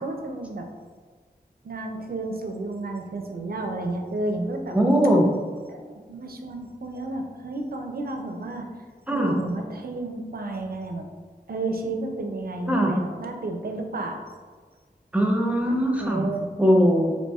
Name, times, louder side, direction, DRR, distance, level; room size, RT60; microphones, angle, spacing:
voice 1, 0.0-0.7 1.6-4.8 5.7-8.7 9.1-11.1 11.5-14.2 16.0-16.5, right 2 dB, 65° right, 3 dB, 0.4 m, -31 dB
voice 2, 4.7-5.3 9.1-9.3 12.7-12.9 15.1-16.3 16.6-17.1, equal, 10° right, 0 dB, 0.5 m, -20 dB
4.1 x 2.5 x 2.3 m, 1.5 s
wide cardioid pair, 70°, 17 cm